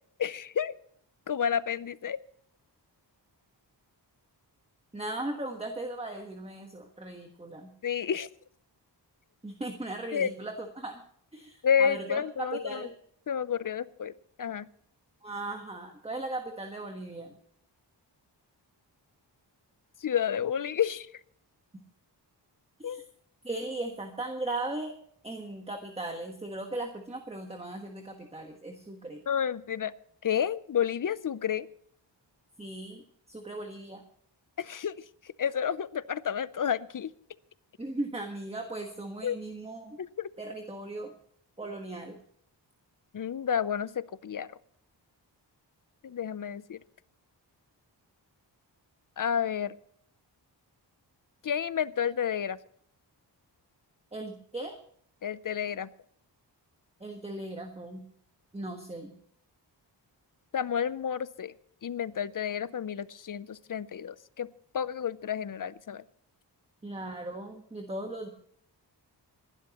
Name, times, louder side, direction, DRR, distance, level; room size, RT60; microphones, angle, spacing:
voice 1, 0.2-0.7 1.3-2.2 7.8-8.3 10.1-10.3 11.6-12.9 13.3-14.7 20.0-21.1 22.8-23.0 29.3-29.9 30.2-31.7 34.6-34.9 35.4-37.1 39.2-39.4 40.0-40.3 43.1-44.5 46.0-46.8 49.2-49.8 51.4-52.6 55.2-55.9 60.5-61.5 61.8-64.5 64.7-66.0, left 8 dB, 50° left, 17 dB, 0.6 m, -30 dB
voice 2, 4.9-7.7 9.4-11.0 11.3-12.9 15.2-17.3 22.8-23.0 23.4-24.9 25.2-29.2 32.6-34.0 37.8-40.0 40.4-41.1 41.6-42.2 54.1-54.7 57.0-58.0 58.5-59.1 66.8-68.3, right 2 dB, 15° right, 4 dB, 1.3 m, -38 dB
27.0 x 11.5 x 3.0 m, 0.65 s
wide cardioid pair, 125°, 43 cm